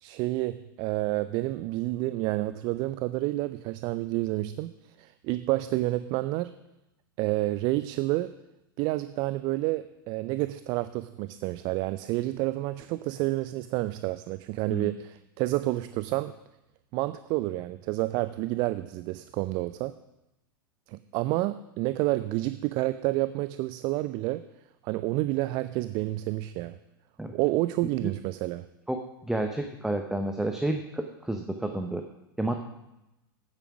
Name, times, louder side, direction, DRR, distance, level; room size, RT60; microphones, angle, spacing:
voice 1, 0.0-4.7 5.0-6.5 7.2-8.3 8.8-16.3 16.9-19.9 20.9-24.4 24.8-26.8 27.3-28.7, right 18 dB, 40° right, 13 dB, 0.4 m, -29 dB
voice 2, 29.2-32.0 32.4-32.6, right 1 dB, 5° right, 5 dB, 0.8 m, -30 dB
9.1 x 8.8 x 6.0 m, 0.91 s
figure-of-eight pair, 95°, 12 cm